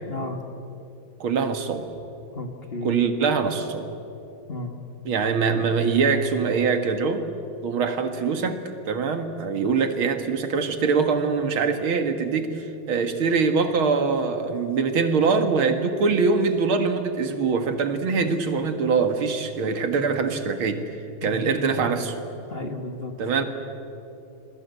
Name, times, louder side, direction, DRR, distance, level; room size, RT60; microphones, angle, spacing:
voice 1, 0.1-0.4 2.3-3.0 4.5-4.8 21.2-21.9 22.5-23.2, left 2 dB, 30° left, 5 dB, 1.6 m, -34 dB
voice 2, 1.2-1.9 2.8-3.9 5.0-7.2 7.6-8.6 8.9-20.8 21.2-22.1 23.2-23.4, right 5 dB, 75° right, 7 dB, 2.5 m, -23 dB
27.5 x 21.0 x 8.2 m, 2.8 s
omnidirectional pair, 2.3 m